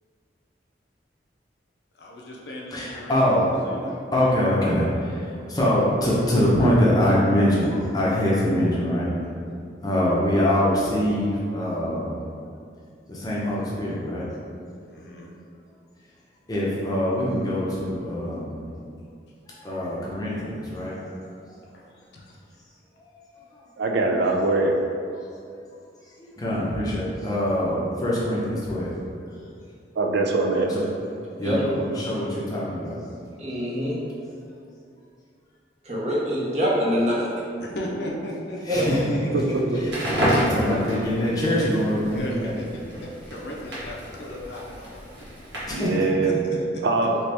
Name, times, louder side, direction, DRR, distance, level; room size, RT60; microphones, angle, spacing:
voice 1, 1.9-3.9 14.9-15.3 21.7-22.4 37.6-38.8 39.5-40.7 42.1-45.3 46.2-46.8, left 1 dB, 65° left, -2 dB, 0.5 m, -37 dB
voice 2, 2.7-9.1 9.8-12.2 13.1-14.3 16.5-18.6 19.5-21.3 23.5-23.6 25.1-25.2 26.2-28.9 29.4-29.5 30.6-30.8 31.4-33.0 38.7-39.2 40.3-42.6 45.7-45.9, equal, 20° left, -6 dB, 0.6 m, -24 dB
voice 3, 23.8-24.7 30.0-30.7 39.3-39.4 45.7-46.3 46.8-47.3, right 3 dB, 70° right, 2 dB, 0.3 m, -22 dB
voice 4, 33.4-34.0 35.8-37.3 38.7-38.8, equal, 35° right, -5 dB, 0.7 m, -24 dB
Crackle, 39.8-45.9, equal, 85° right, 1.2 m, -29 dB
3.0 x 2.8 x 3.3 m, 2.4 s
head